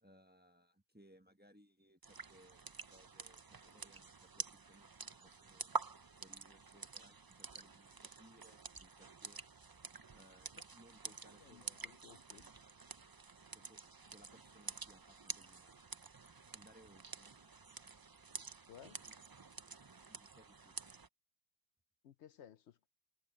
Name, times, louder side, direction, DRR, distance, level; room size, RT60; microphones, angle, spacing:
voice 1, 0.0-5.7 6.2-9.4 10.1-12.6 13.5-15.8 16.5-17.4 19.0-19.1 20.1-20.7, equal, 10° right, 1.2 m, -65 dB
sound 1, 2.0-21.1, right 4 dB, 35° right, 0.4 m, -49 dB
voice 2, 11.4-12.4 18.7-19.0 22.0-22.9, left 9 dB, 70° left, 0.9 m, -58 dB
omnidirectional pair, 1.2 m